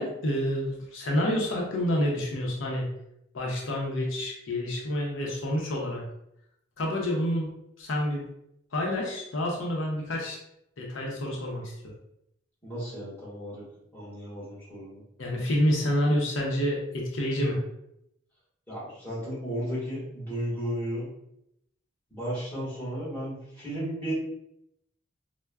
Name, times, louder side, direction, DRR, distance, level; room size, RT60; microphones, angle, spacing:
voice 1, 0.0-2.9 3.3-6.0 6.8-7.5 7.8-8.3 8.7-10.4 10.8-11.9 15.2-17.6, left 1 dB, 90° left, -1 dB, 0.7 m, -28 dB
voice 2, 12.6-13.6 13.9-15.0 18.7-21.1 22.1-24.1, equal, 10° left, -11 dB, 1.4 m, -34 dB
4.3 x 2.1 x 2.3 m, 0.79 s
head